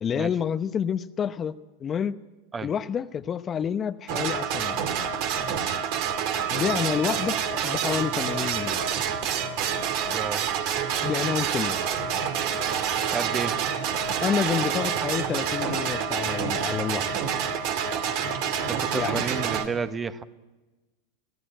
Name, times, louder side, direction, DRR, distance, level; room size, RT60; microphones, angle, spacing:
voice 1, 0.0-2.2 2.6-4.8 6.5-7.4 7.6-8.9 11.0-11.8 14.2-17.1 18.9-19.2, left 8 dB, 30° left, 12 dB, 0.8 m, -28 dB
sound 1, 4.1-19.7, right 7 dB, 55° right, 2.3 m, -27 dB
voice 2, 10.1-10.5 13.1-13.6 18.7-20.2, right 5 dB, 20° right, 12 dB, 1.0 m, -31 dB
25.5 x 16.0 x 9.0 m, 1.2 s
hypercardioid pair, 100°, 0 cm